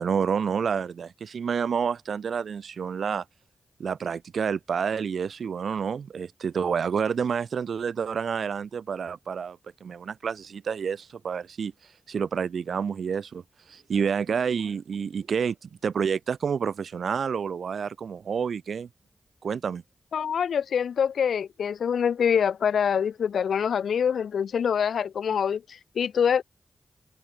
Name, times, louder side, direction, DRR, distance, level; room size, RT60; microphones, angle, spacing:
voice 1, 0.0-3.2 3.8-11.7 12.1-13.4 13.7-18.9 19.4-19.8, right 6 dB, 80° right, 6.6 m, -29 dB
voice 2, 20.1-26.4, left 7 dB, 90° left, 6.7 m, -25 dB
cardioid pair, 50°, 0 cm